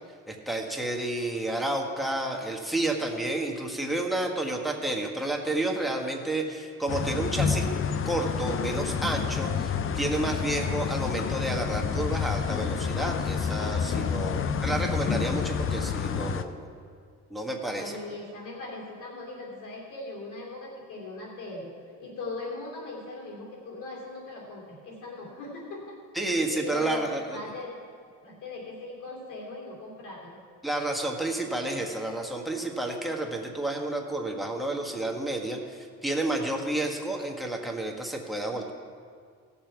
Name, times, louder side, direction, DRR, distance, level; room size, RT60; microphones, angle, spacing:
voice 1, 0.3-7.7 8.0-16.7 17.3-18.0 26.1-27.5 30.6-38.7, right 2 dB, ahead, 2 dB, 1.5 m, -30 dB
sound 1, 6.9-16.4, left 6 dB, 45° left, 0.6 m, -29 dB
voice 2, 14.1-14.5 17.8-21.7 22.0-26.0 26.5-27.7 28.2-30.4, left 2 dB, 80° left, -2 dB, 3.0 m, -40 dB
17.0 x 7.2 x 4.6 m, 2.1 s
cardioid pair, 90°, 30 cm